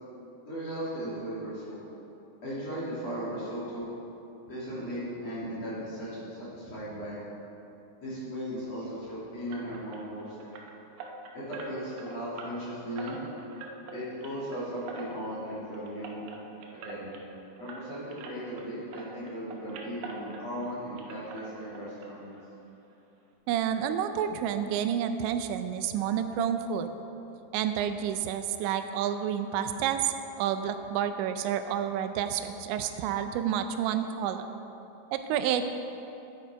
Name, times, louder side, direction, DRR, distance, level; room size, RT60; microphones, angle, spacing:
voice 1, 0.4-1.8 2.4-3.9 4.5-7.2 8.0-10.5 11.3-13.2 13.9-16.2 16.7-17.1 17.6-22.3, equal, 40° left, -10 dB, 3.4 m, -37 dB
sound 1, 9.5-18.7 18.9-20.7 21.0-22.1 22.3-22.5 22.9-23.0 23.3-23.4, right 3 dB, 75° right, 2.5 m, -45 dB
voice 2, 23.5-26.9 27.5-34.6 35.1-35.6, right 9 dB, 90° right, 8 dB, 2.9 m, -29 dB
10.0 x 9.4 x 4.5 m, 2.9 s
omnidirectional pair, 5.1 m